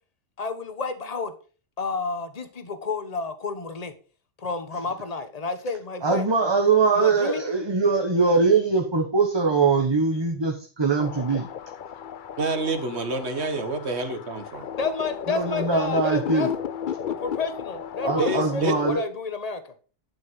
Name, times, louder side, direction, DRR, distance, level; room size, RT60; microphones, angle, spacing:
voice 1, 0.4-1.3 1.8-3.9 4.4-6.2 7.0-7.4 14.8-16.5 17.1-19.6, left 4 dB, 35° left, 10 dB, 1.3 m, -30 dB
voice 2, 6.0-11.5 15.3-16.5 18.0-19.1, right 4 dB, 20° right, 2 dB, 1.3 m, -22 dB
sound 1, 11.0-18.9, left 8 dB, 55° left, 0.6 m, -34 dB
voice 3, 12.4-14.7 18.2-18.7, right 3 dB, 65° right, 9 dB, 1.8 m, -28 dB
11.5 x 6.5 x 5.4 m, 0.37 s
omnidirectional pair, 1.2 m